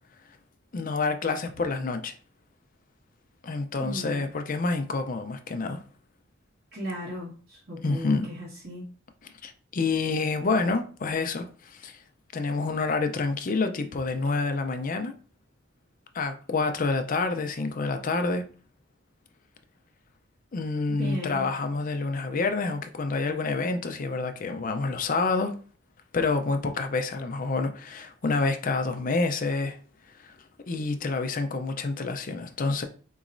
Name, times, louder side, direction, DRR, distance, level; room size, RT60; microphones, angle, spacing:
voice 1, 0.7-2.1 3.4-5.8 7.8-8.3 9.4-12.0 12.3-15.1 16.1-18.4 20.5-25.5 26.1-29.8 30.7-32.8, left 3 dB, 45° left, 0.5 m, -28 dB
voice 2, 3.8-4.2 6.7-8.8 21.0-21.5, equal, 55° right, 1.4 m, -36 dB
4.6 x 3.0 x 2.6 m
head